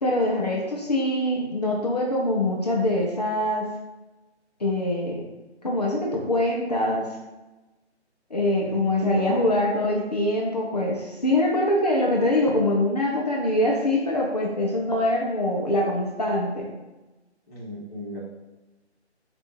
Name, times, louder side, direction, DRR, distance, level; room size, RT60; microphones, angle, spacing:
voice 1, 0.0-3.7 4.6-5.2 5.6-7.1 8.3-16.7, left 1 dB, 35° left, -2 dB, 0.6 m, -24 dB
voice 2, 8.6-9.5 17.5-18.2, equal, ahead, -20 dB, 0.8 m, -36 dB
4.5 x 2.6 x 4.4 m, 1.1 s
figure-of-eight pair, 160°, 34 cm